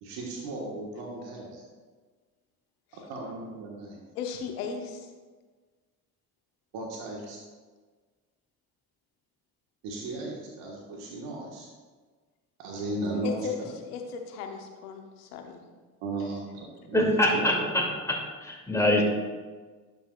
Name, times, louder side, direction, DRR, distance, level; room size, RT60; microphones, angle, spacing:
voice 1, 0.0-1.6 3.1-4.0 6.7-7.4 9.8-11.7 12.6-13.7 16.0-18.0, right 2 dB, 70° right, -2 dB, 1.6 m, -36 dB
voice 2, 4.1-5.1 13.2-15.6, left 6 dB, 90° left, 4 dB, 1.0 m, -36 dB
voice 3, 16.9-19.0, left 1 dB, 5° left, -3 dB, 2.6 m, -25 dB
11.5 x 6.8 x 2.4 m, 1.4 s
hypercardioid pair, 55°, 45 cm